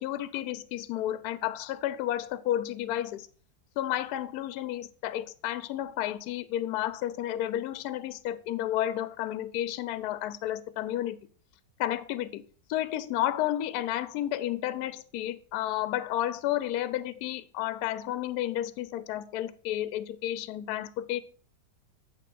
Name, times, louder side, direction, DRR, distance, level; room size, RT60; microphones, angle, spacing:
voice 1, 0.0-3.3 3.8-11.2 11.8-12.4 12.7-21.2, left 13 dB, 70° left, 14 dB, 1.0 m, -31 dB
8.6 x 3.3 x 6.1 m, 0.43 s
omnidirectional pair, 1.9 m